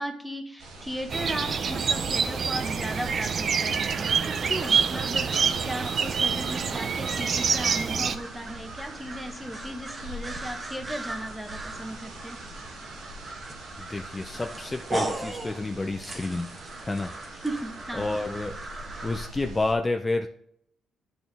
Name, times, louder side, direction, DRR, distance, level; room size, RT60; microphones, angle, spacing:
voice 1, 0.0-12.4 17.4-18.1, equal, 5° right, 5 dB, 1.2 m, -36 dB
sound 1, 0.6-19.7, right 1 dB, 90° right, 2.0 m, -44 dB
sound 2, 1.1-8.2, right 6 dB, 55° right, 0.5 m, -26 dB
sound 3, 3.9-19.3, right 2 dB, 30° right, 1.1 m, -39 dB
voice 2, 13.8-16.5 16.8-17.1 17.9-18.6 19.0-20.3, left 2 dB, 20° left, 4 dB, 0.5 m, -29 dB
11.0 x 4.2 x 3.4 m, 0.70 s
cardioid pair, 90°, 0 cm